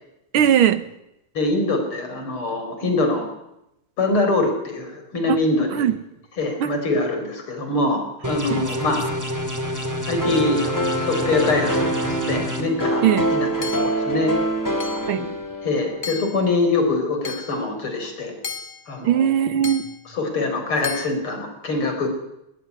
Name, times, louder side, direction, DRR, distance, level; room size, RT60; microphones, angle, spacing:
voice 1, 0.3-0.9 5.3-5.4 5.7-6.0 6.6-6.7 8.5-8.6 13.0-13.3 15.1-15.3 19.0-19.9, right 10 dB, 75° right, 2.0 m, -19 dB
voice 2, 1.4-3.3 4.0-5.8 6.4-9.0 10.1-13.1 13.3-14.3 15.6-18.3 18.9-19.3 20.1-22.1, left 2 dB, 80° left, 5.2 m, -24 dB
sound 1, 8.2-12.6, left 1 dB, 10° right, 2.4 m, -28 dB
sound 2, 10.2-16.1, right 1 dB, 10° left, 2.4 m, -25 dB
Hammer / Chink clink, 13.6-14.1 14.8-15.2 16.0-16.5 17.2-17.6 18.4-18.9 19.6-20.0 20.8-21.1, left 6 dB, 35° left, 0.9 m, -34 dB
19.5 x 19.0 x 9.7 m
omnidirectional pair, 2.3 m